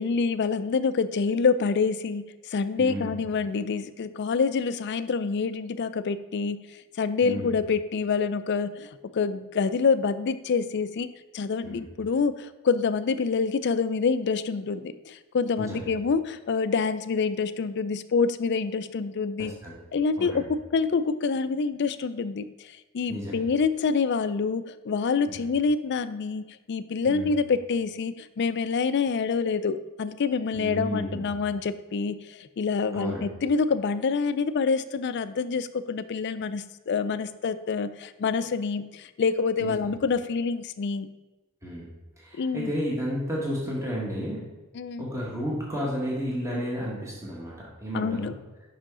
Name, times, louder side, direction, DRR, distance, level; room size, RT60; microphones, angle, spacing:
voice 1, 0.0-11.1 11.3-19.5 19.9-20.3 20.7-41.1 42.3-42.7 44.7-45.1 47.9-48.3, left 5 dB, 55° left, 13 dB, 0.4 m, -27 dB
voice 2, 2.8-3.1 7.2-7.5 11.6-11.8 15.6-15.9 19.4-19.8 20.2-20.5 23.1-23.4 25.3-25.4 27.0-27.3 30.5-31.3 32.9-33.2 39.6-39.7 41.6-41.9 42.2-44.4 45.0-48.3, equal, 15° right, -4 dB, 1.6 m, -32 dB
7.4 x 5.8 x 3.7 m, 1.1 s
head